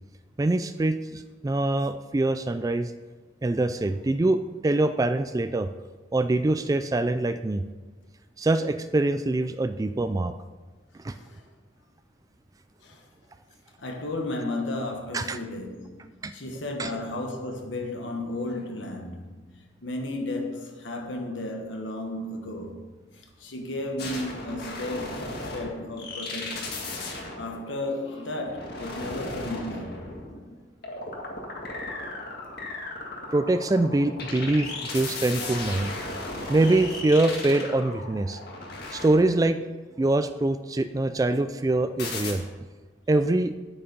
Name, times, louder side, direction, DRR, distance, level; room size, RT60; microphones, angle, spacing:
voice 1, 0.4-2.9 3.4-5.7 6.1-7.6 8.4-10.3 11.0-11.1 15.1-15.4 16.2-16.3 16.8-16.9 33.3-35.9 36.5-38.4 38.9-39.6 40.0-42.4 43.1-43.5, right 2 dB, 20° right, 0.3 m, -24 dB
voice 2, 11.1-11.4 12.8-13.0 13.8-22.8 23.4-26.8 27.4-30.1 35.4-36.2, left 1 dB, 75° left, 1.3 m, -34 dB
sound 1, 24.0-39.7 42.0-42.3, left 2 dB, 55° left, 1.9 m, -36 dB
9.4 x 8.7 x 5.3 m
head